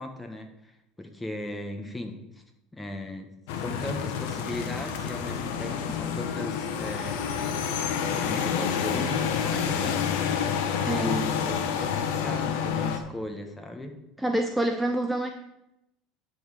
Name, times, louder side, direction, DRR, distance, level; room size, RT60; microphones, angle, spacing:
voice 1, 0.0-2.2 2.7-3.3 3.6-7.2 8.2-10.0 10.9-13.9, left 1 dB, 10° left, 4 dB, 1.4 m, -37 dB
sound 1, 3.5-13.0, left 7 dB, 75° left, 1.0 m, -28 dB
voice 2, 10.9-11.3 14.2-15.3, right 1 dB, 5° right, 5 dB, 0.6 m, -27 dB
10.5 x 4.2 x 6.6 m, 0.86 s
supercardioid pair, 110°, 0 cm